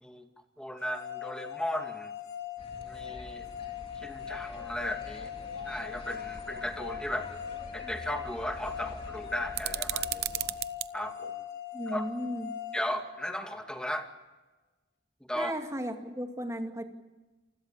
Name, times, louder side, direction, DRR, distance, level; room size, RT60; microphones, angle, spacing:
voice 1, 0.6-2.1 2.8-3.5 4.0-5.3 5.6-7.3 7.7-10.2 10.9-11.4 11.9-12.1 12.7-14.1 15.3-15.5, equal, 5° left, 5 dB, 2.2 m, -36 dB
sound 1, 0.8-13.8, left 9 dB, 70° left, 6.0 m, -41 dB
sound 2, 2.6-10.6, left 1 dB, 35° left, 3.2 m, -47 dB
sound 3, 9.5-10.9, right 15 dB, 65° right, 0.7 m, -33 dB
voice 2, 11.7-12.5 15.4-16.8, equal, 20° right, 4 dB, 2.4 m, -35 dB
28.0 x 20.5 x 7.5 m, 1.2 s
head